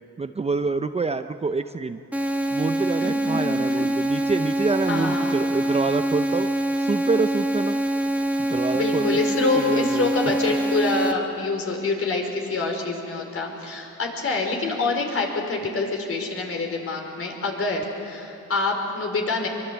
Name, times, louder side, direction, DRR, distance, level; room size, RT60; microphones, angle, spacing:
voice 1, 0.2-2.0 2.5-6.5 6.8-7.8 8.4-9.2 9.5-10.3, right 4 dB, 20° right, 9 dB, 0.6 m, -26 dB
sound 1, 2.1-11.1, right 1 dB, 5° right, 1.6 m, -25 dB
voice 2, 3.0-3.9 4.9-5.4 8.7-19.5, left 3 dB, 50° left, 2 dB, 4.7 m, -26 dB
23.5 x 23.0 x 8.2 m, 2.8 s
cardioid pair, 90°, 30 cm